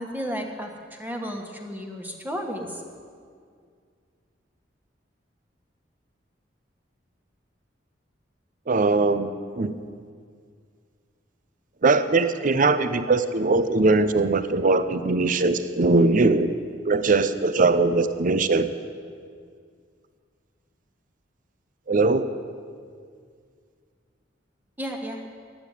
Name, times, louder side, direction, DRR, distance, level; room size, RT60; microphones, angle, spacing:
voice 1, 0.0-2.8 24.8-25.2, equal, 10° right, 2 dB, 1.4 m, -33 dB
voice 2, 8.7-9.7 11.8-16.5 16.9-18.7 21.9-22.3, right 3 dB, 45° right, 11 dB, 0.6 m, -21 dB
11.0 x 8.8 x 9.8 m, 2.1 s
head